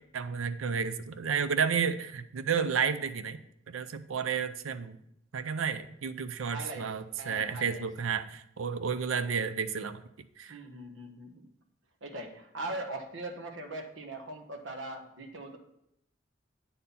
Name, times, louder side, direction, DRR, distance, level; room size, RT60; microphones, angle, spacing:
voice 1, 0.1-5.0 5.3-10.0 10.4-10.6, right 6 dB, 90° right, 12 dB, 0.5 m, -31 dB
voice 2, 6.5-7.9 10.5-11.5 12.0-15.6, right 2 dB, 70° right, 4 dB, 1.2 m, -41 dB
8.6 x 4.3 x 5.4 m, 0.78 s
head